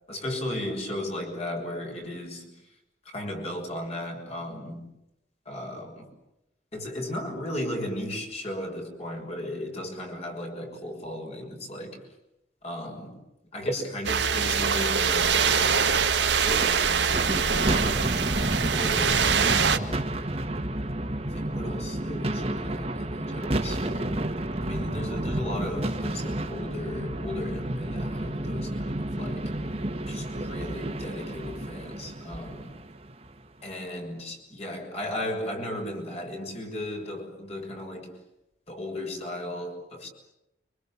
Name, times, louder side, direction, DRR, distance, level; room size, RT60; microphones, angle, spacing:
voice 1, 0.1-2.5 3.1-4.9 5.4-6.1 6.7-12.0 12.6-13.2 13.5-15.8 16.3-18.4 18.7-20.3 21.1-24.2 24.6-29.5 30.1-32.7 33.6-38.1 38.7-40.1, left 1 dB, 35° left, 3 dB, 6.5 m, -36 dB
sound 1, 14.0-19.8, right 6 dB, 90° right, 2.0 m, -24 dB
sound 2, 17.1-33.5, right 1 dB, 35° right, 2.0 m, -31 dB
30.0 x 26.0 x 7.4 m, 0.89 s
head